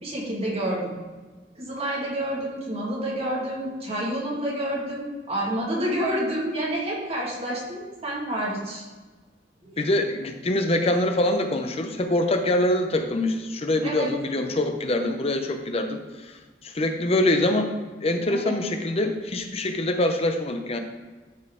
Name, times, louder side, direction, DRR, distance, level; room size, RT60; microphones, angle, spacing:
voice 1, 0.0-1.0 1.6-8.9 9.6-9.8 13.8-14.1 18.3-18.5, right 1 dB, 35° right, -4 dB, 2.0 m, -29 dB
voice 2, 9.8-16.0 16.6-17.7 18.0-20.8, left 1 dB, 35° left, 6 dB, 0.7 m, -24 dB
12.0 x 4.4 x 3.8 m, 1.3 s
head